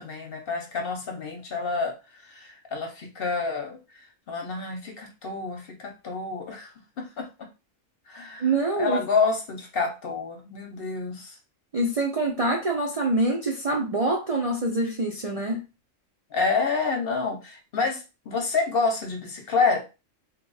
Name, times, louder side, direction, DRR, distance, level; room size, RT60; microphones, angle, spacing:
voice 1, 0.0-6.7 7.0-7.3 8.1-8.5 8.8-11.4 16.3-19.9, left 4 dB, 55° left, 2 dB, 0.8 m, -28 dB
voice 2, 8.4-9.0 11.7-15.6, right 2 dB, 50° right, 0 dB, 0.4 m, -25 dB
2.9 x 2.3 x 3.8 m, 0.29 s
omnidirectional pair, 1.4 m